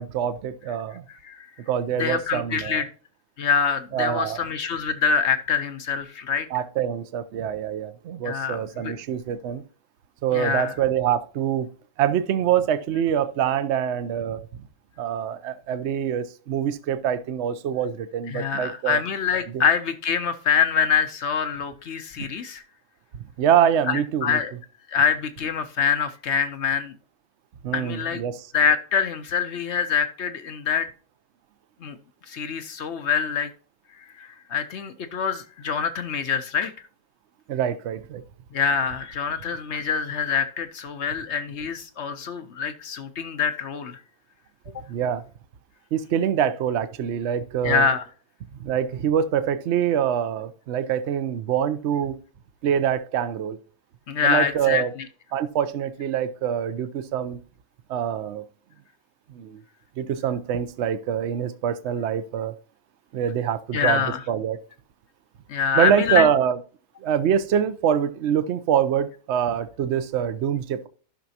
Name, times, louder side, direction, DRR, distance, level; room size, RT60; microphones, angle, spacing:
voice 1, 0.0-1.0 1.7-2.8 3.9-4.4 6.5-9.6 10.2-11.7 12.0-14.7 15.0-19.0 19.5-19.6 23.4-24.4 27.6-28.5 37.5-38.2 44.9-45.2 45.9-47.9 48.6-52.2 52.6-53.6 54.2-54.9 55.3-57.4 57.9-58.4 59.3-59.6 60.0-62.5 63.1-64.6 65.7-66.6 67.0-70.9, right 9 dB, 60° right, 0.8 m, -25 dB
voice 2, 1.1-1.5 2.0-2.9 3.4-6.5 8.2-8.9 10.3-10.7 18.3-22.6 23.9-24.5 24.9-26.9 27.7-28.2 28.5-30.9 31.8-32.0 32.3-33.5 34.0-36.7 38.5-44.0 47.6-48.0 54.1-54.8 63.7-64.2 65.5-66.3, left 6 dB, 55° left, 0.8 m, -25 dB
14.0 x 5.9 x 2.8 m
omnidirectional pair, 1.7 m